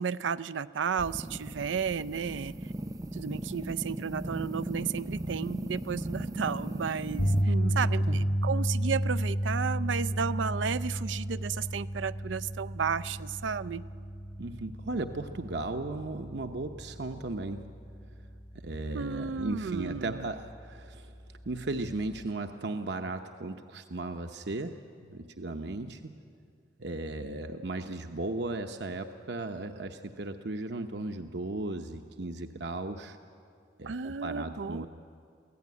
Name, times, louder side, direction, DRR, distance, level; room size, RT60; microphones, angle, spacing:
voice 1, 0.0-2.5 3.1-13.9 18.9-20.3 33.8-34.9, right 6 dB, 90° right, 17 dB, 0.5 m, -33 dB
sound 1, 1.0-7.4, right 1 dB, 20° right, 0.6 m, -37 dB
sound 2, 7.2-19.4 19.8-20.0 22.2-22.3, equal, 45° left, 1.7 m, -32 dB
voice 2, 7.4-7.8 8.1-8.2 14.4-17.6 18.6-21.1 21.5-24.8 25.0-26.1 26.8-33.2 33.8-34.9, right 2 dB, 65° right, 5 dB, 0.9 m, -36 dB
23.5 x 16.0 x 9.6 m, 2.4 s
head